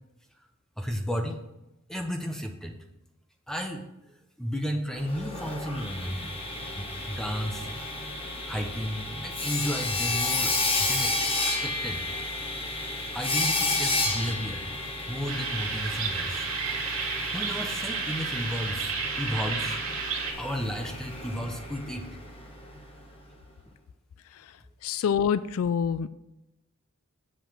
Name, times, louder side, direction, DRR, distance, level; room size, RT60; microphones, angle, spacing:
voice 1, 0.8-1.4 1.9-2.8 3.5-6.3 6.8-7.7 8.1-12.1 13.1-16.5 17.3-19.8 20.4-22.1, equal, 5° left, 4 dB, 0.7 m, -33 dB
Sawing, 5.0-22.8, left 2 dB, 25° left, 1.2 m, -32 dB
sound 1, 15.3-20.3, right 5 dB, 70° right, 2.0 m, -32 dB
voice 2, 24.8-26.1, left 7 dB, 70° left, 15 dB, 0.3 m, -26 dB
7.8 x 5.1 x 5.8 m, 0.93 s
head